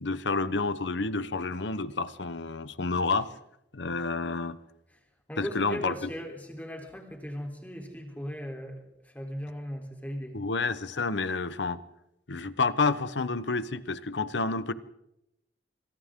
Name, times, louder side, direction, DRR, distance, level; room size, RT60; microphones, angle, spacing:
voice 1, 0.0-3.3 3.7-4.6 5.4-6.1 10.3-11.8 12.3-14.7, left 3 dB, 85° left, 14 dB, 1.0 m, -29 dB
voice 2, 5.3-8.8 9.1-10.4, equal, 10° left, 2 dB, 3.6 m, -38 dB
27.0 x 26.0 x 3.8 m, 0.85 s
head